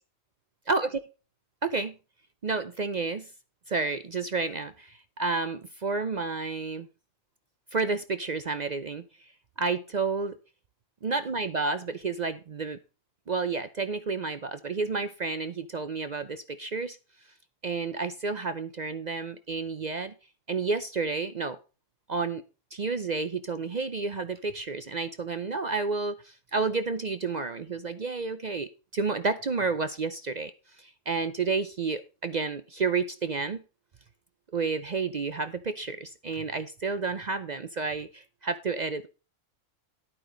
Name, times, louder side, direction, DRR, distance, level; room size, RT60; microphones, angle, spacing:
voice 1, 0.7-1.0 1.6-2.0 2.4-3.3 3.7-6.9 7.7-9.0 9.6-10.4 11.0-12.8 13.3-17.0 17.6-20.1 20.5-21.6 22.1-22.4 22.7-30.5 30.8-33.6 34.5-39.1, right 4 dB, 55° right, 11 dB, 0.4 m, -30 dB
11.5 x 8.8 x 3.9 m, 0.32 s
omnidirectional pair, 1.5 m